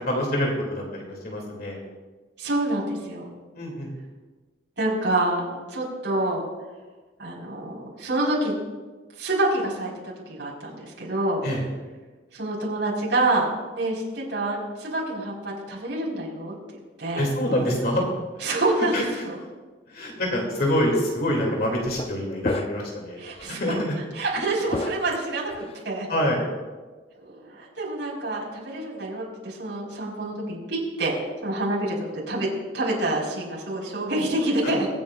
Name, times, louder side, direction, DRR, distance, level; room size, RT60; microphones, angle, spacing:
voice 1, 0.0-1.8 3.5-3.9 11.4-11.6 17.1-18.0 18.9-19.2 19.9-23.2 23.5-23.9 26.1-26.4 34.6-34.7, equal, 55° left, -1 dB, 2.5 m, -26 dB
voice 2, 2.4-3.3 4.8-6.4 7.2-8.5 9.2-9.9 10.4-11.4 12.3-13.5 13.7-17.3 18.4-18.9 19.3-19.4 23.2-23.6 24.1-26.1 27.2-31.1 31.4-32.5 32.7-34.9, right 2 dB, 75° right, -4 dB, 4.3 m, -27 dB
sound 1, 20.7-20.9 21.8-22.1 22.4-23.0 23.3-23.5 24.7-25.8, left 2 dB, 30° left, 0.5 m, -32 dB
23.5 x 8.7 x 2.4 m, 1.3 s
head